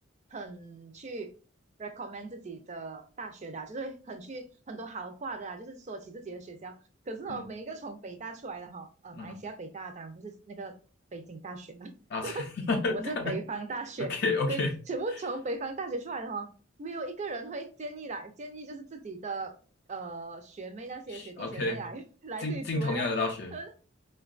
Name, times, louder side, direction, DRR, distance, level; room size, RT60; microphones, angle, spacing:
voice 1, 0.3-1.3 1.8-6.8 7.1-10.7 11.1-11.9 12.2-12.4 12.9-14.2 14.5-19.5 19.9-23.1 23.5-23.7, right 3 dB, 35° right, 0.5 m, -38 dB
voice 2, 12.1-13.3 14.1-14.7 21.1-21.8 22.4-23.5, left 3 dB, 55° left, 0.5 m, -30 dB
4.3 x 2.2 x 2.3 m
head